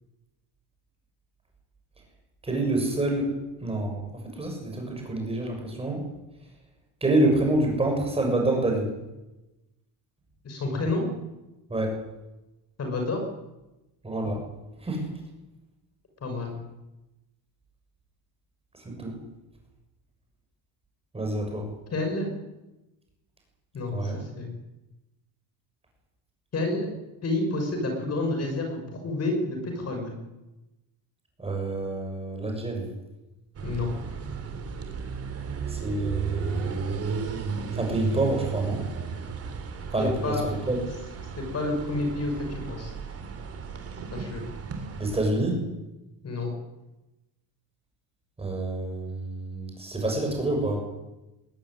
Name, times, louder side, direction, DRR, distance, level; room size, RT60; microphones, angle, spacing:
voice 1, 2.4-3.3 3.6-4.0 4.3-6.0 7.0-8.9 11.7-12.0 14.0-14.4 14.8-15.1 18.7-19.2 21.1-21.6 23.9-24.2 31.4-32.9 35.7-36.8 37.7-38.8 39.9-40.8 45.0-45.6 48.4-50.8, right 2 dB, 15° right, 1 dB, 7.2 m, -27 dB
voice 2, 10.4-11.1 12.8-13.2 16.2-16.6 21.9-22.3 23.7-24.5 26.5-26.9 27.2-30.1 33.6-33.9 40.0-40.4 41.4-42.9 44.1-44.4 46.2-46.5, left 2 dB, 35° left, 4 dB, 6.4 m, -29 dB
sound 1, 33.5-45.3, right 5 dB, 35° right, 3.5 m, -34 dB
21.5 x 17.0 x 10.0 m, 1.0 s
cardioid pair, 160°, 43 cm